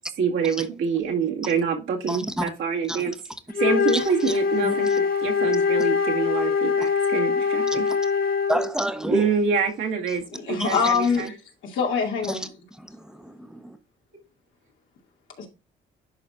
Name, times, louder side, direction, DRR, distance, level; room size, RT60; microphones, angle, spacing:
voice 1, 0.2-3.1 3.6-7.8 9.1-11.3, right 6 dB, 80° right, 2.1 m, -26 dB
voice 2, 2.1-2.5 2.9-3.1 3.9-4.8 6.8-6.9 7.7-8.0 8.5-9.3 10.6-10.9 12.3-13.8, equal, 5° right, 1.0 m, -30 dB
Wind instrument woodwind instrument, 3.5-8.7, left 6 dB, 50° left, 1.2 m, -23 dB
voice 3, 10.3-11.2 11.6-12.5 15.4-15.5, left 6 dB, 75° left, 2.5 m, -24 dB
11.0 x 4.3 x 2.6 m
cardioid pair, 90°, 20 cm